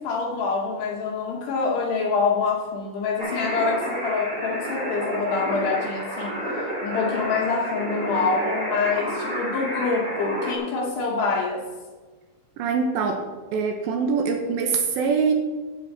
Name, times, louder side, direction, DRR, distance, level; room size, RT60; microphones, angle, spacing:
voice 1, 0.0-6.4 6.8-11.6, left 4 dB, 70° left, -1 dB, 2.9 m, -26 dB
sound 1, 3.2-10.5, equal, 15° right, 2.3 m, -30 dB
voice 2, 12.6-15.3, right 5 dB, 80° right, 4 dB, 2.7 m, -24 dB
16.0 x 8.4 x 4.1 m, 1.3 s
omnidirectional pair, 5.9 m